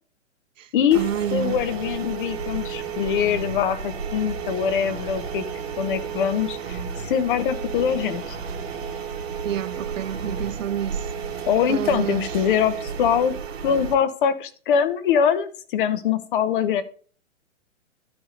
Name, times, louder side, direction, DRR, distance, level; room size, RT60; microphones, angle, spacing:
voice 1, 0.6-1.6 9.4-11.1 11.7-12.5, right 10 dB, 80° right, 0.7 m, -29 dB
sound 1, 0.9-13.9, right 6 dB, 55° right, 2.2 m, -32 dB
voice 2, 1.3-5.4 5.8-8.4 11.5-13.3 13.6-16.8, left 8 dB, 40° left, 1.0 m, -23 dB
11.5 x 5.3 x 4.0 m
hypercardioid pair, 140°, 38 cm